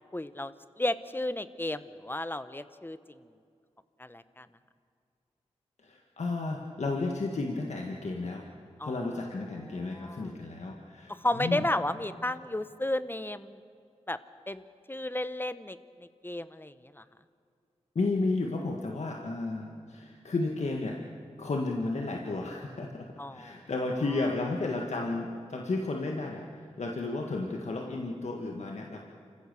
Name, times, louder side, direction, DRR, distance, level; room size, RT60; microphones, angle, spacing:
voice 1, 0.0-3.0 4.0-4.5 8.8-9.1 9.9-10.3 11.1-13.6 14.1-14.2 14.5-14.6 14.9-15.8 16.2-17.0 23.2-23.5, left 1 dB, 15° left, 13 dB, 1.0 m, -33 dB
voice 2, 5.8-8.5 8.8-11.7 17.9-21.0 21.4-29.0, left 3 dB, 70° left, 0 dB, 1.7 m, -33 dB
27.5 x 15.5 x 6.9 m, 2.3 s
cardioid pair, 45°, 12 cm